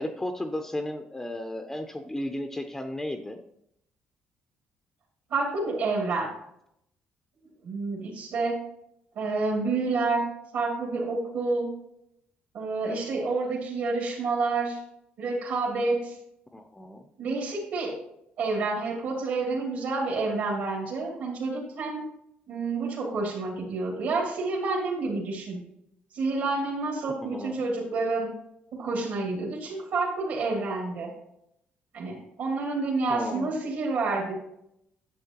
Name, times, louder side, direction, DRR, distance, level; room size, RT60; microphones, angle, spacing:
voice 1, 0.0-3.4 16.5-17.0 27.2-27.6 33.1-33.6, left 1 dB, 10° left, 6 dB, 0.5 m, -34 dB
voice 2, 5.3-6.3 7.6-8.6 9.2-10.2 10.5-11.7 12.5-14.8 15.2-16.2 17.2-17.9 18.4-22.0 22.5-25.6 26.1-28.3 28.7-31.1 31.9-34.4, right 3 dB, 70° right, -3 dB, 2.4 m, -29 dB
10.0 x 7.7 x 2.9 m, 0.77 s
cardioid pair, 135°, 3 cm